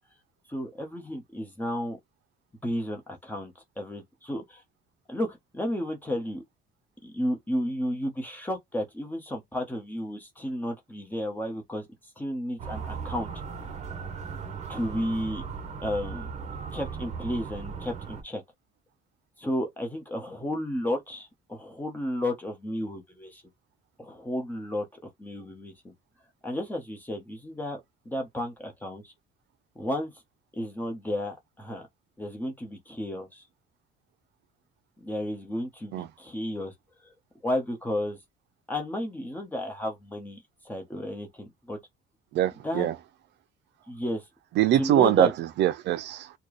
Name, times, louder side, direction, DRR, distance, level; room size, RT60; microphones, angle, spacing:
voice 1, 0.5-2.0 2.6-4.6 5.1-6.4 7.0-11.9 12.2-13.3 14.7-15.4 15.8-16.3 16.7-18.4 19.4-23.4 24.0-25.9 26.4-27.8 28.0-29.1 29.8-30.1 30.5-31.9 32.2-33.4 35.0-36.7 37.4-38.2 38.7-40.4 40.6-41.8 42.6-42.9 43.9-44.2 44.7-45.3, left 1 dB, 10° left, 1.0 m, -32 dB
Motor vehicle (road) / Siren, 12.6-18.2, right 6 dB, 35° right, 1.1 m, -37 dB
voice 2, 42.3-42.9 44.6-46.3, right 12 dB, 60° right, 0.5 m, -23 dB
4.4 x 2.3 x 3.2 m
cardioid pair, 160°, 20 cm